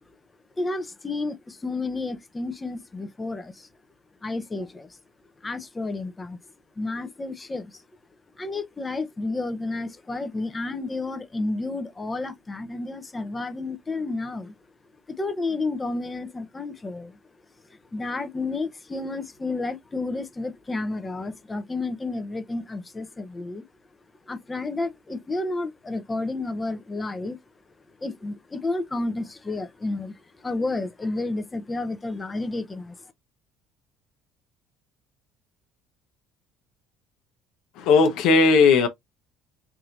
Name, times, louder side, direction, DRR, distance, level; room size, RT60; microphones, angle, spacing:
voice 1, 0.6-3.7 4.2-5.0 5.4-6.4 6.8-7.8 8.4-14.5 15.1-17.2 17.7-23.6 24.3-27.4 28.0-33.0, left 2 dB, 20° left, 0.7 m, -31 dB
voice 2, 37.8-38.9, left 4 dB, 70° left, 0.9 m, -17 dB
4.7 x 2.8 x 2.5 m
supercardioid pair, 85°, 0 cm